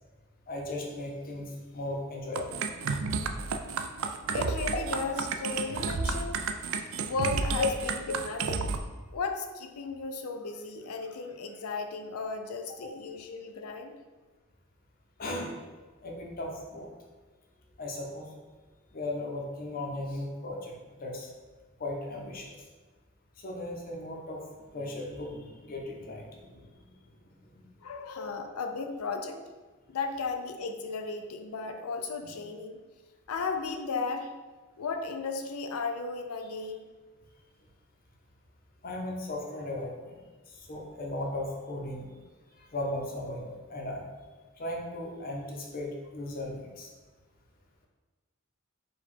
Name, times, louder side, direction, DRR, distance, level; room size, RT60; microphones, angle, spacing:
voice 1, 0.5-2.6 7.6-7.7 12.8-12.9 15.2-15.5 16.0-16.9 17.8-18.3 18.9-21.3 21.8-22.6 23.4-24.4 24.7-26.7 27.5-27.6 32.2-32.3 38.8-40.2 40.5-42.1 42.6-44.0 44.6-46.9, left 2 dB, 45° left, 0 dB, 0.7 m, -36 dB
sound 1, 2.3-8.8, right 5 dB, 65° right, 0.3 m, -31 dB
voice 2, 4.3-6.5 7.0-8.7 9.1-13.9 27.8-29.4 29.9-32.8 33.3-34.3 34.8-36.9, left 4 dB, 90° left, 6 dB, 0.5 m, -35 dB
4.6 x 2.3 x 4.2 m, 1.3 s
head